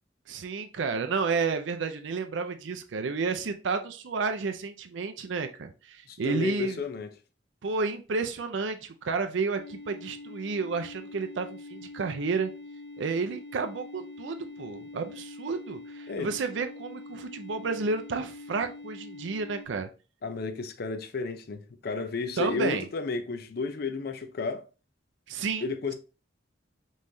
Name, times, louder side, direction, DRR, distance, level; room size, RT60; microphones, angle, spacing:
voice 1, 0.3-6.8 7.6-12.5 13.0-19.9 22.4-22.9 25.3-25.9, right 4 dB, 80° right, 0.5 m, -31 dB
voice 2, 6.1-7.1 16.1-16.3 20.2-24.7 25.6-25.9, left 4 dB, 55° left, 0.5 m, -32 dB
sound 1, 9.6-19.7, left 2 dB, 90° left, 1.2 m, -44 dB
5.5 x 3.1 x 2.6 m
head